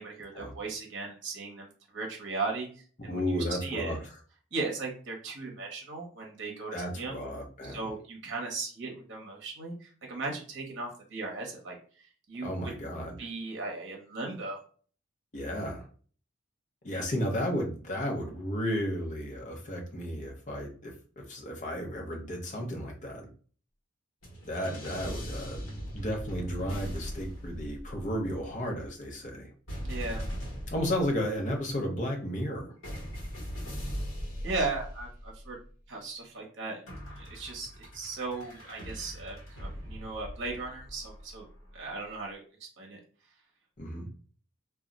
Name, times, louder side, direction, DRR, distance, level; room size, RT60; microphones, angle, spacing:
voice 1, 0.0-3.3 3.6-4.0 4.5-7.2 7.6-12.7 13.2-14.6 29.8-30.2 34.4-35.6 35.9-36.8 37.2-41.5 41.7-42.4 42.8-43.0, right 3 dB, 60° right, 0 dB, 0.8 m, -37 dB
voice 2, 3.1-4.1 6.7-7.9 12.4-13.2 15.3-15.9 16.8-23.3 24.5-25.6 25.9-29.5 30.7-32.7 43.8-44.1, equal, 35° left, 1 dB, 0.6 m, -33 dB
sound 1, 24.2-28.5 29.7-31.6 32.8-35.7 36.9-41.9, equal, 70° left, 1.0 m, -40 dB
2.3 x 2.0 x 3.7 m, 0.43 s
head